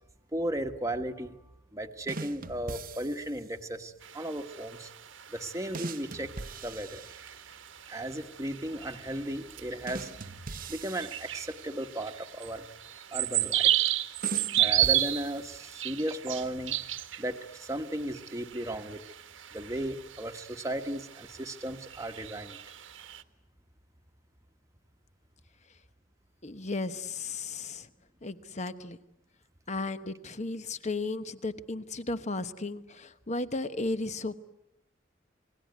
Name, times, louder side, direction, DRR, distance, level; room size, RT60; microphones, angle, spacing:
voice 1, 0.3-1.4 1.7-4.9 5.3-6.3 6.6-7.1 7.9-10.1 10.7-12.6 13.1-13.7 14.6-16.7 17.2-19.0 19.5-22.6, right 1 dB, 15° right, 5 dB, 1.3 m, -35 dB
sound 1, 2.1-3.5 5.7-7.7 9.9-12.0 14.2-15.8, right 3 dB, 45° right, 0.9 m, -42 dB
sound 2, 4.0-23.2, right 13 dB, 75° right, 1.4 m, -34 dB
voice 2, 26.4-27.9 28.2-29.0 29.7-34.4, left 3 dB, 35° left, 12 dB, 1.1 m, -35 dB
28.0 x 20.5 x 9.5 m, 0.87 s
head